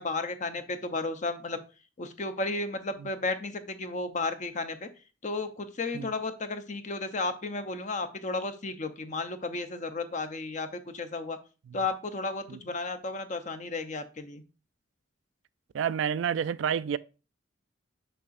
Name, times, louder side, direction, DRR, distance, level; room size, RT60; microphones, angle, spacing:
voice 1, 0.0-1.6 2.0-4.9 5.2-11.4 11.7-14.4, left 3 dB, 40° left, 0.7 m, -33 dB
voice 2, 15.7-17.0, right 8 dB, 80° right, 0.3 m, -29 dB
6.6 x 5.7 x 2.5 m
head